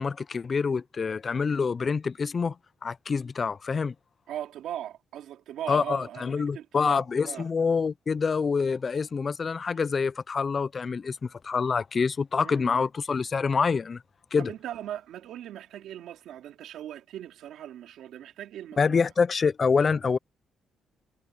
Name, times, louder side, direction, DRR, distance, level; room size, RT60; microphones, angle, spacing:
voice 1, 0.0-2.6 2.8-3.9 5.7-14.0 14.3-14.5 18.8-20.2, left 5 dB, 35° left, 0.4 m, -26 dB
voice 2, 4.3-7.5 12.4-12.9 14.4-19.1, right 11 dB, 80° right, 2.6 m, -39 dB
cardioid pair, 115°, 0 cm